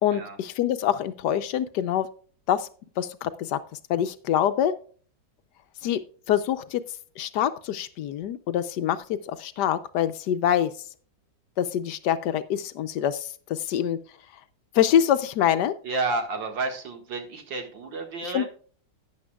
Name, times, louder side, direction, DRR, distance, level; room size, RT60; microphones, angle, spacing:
voice 1, 0.0-2.1 2.5-2.7 3.0-3.6 3.9-4.7 5.8-6.0 6.3-6.8 7.2-9.0 9.3-10.7 11.6-14.0 14.7-15.7 18.3-18.4, left 10 dB, 75° left, 11 dB, 1.1 m, -25 dB
voice 2, 15.8-18.4, right 3 dB, 80° right, 5 dB, 2.4 m, -31 dB
12.0 x 9.4 x 2.3 m, 0.43 s
omnidirectional pair, 2.0 m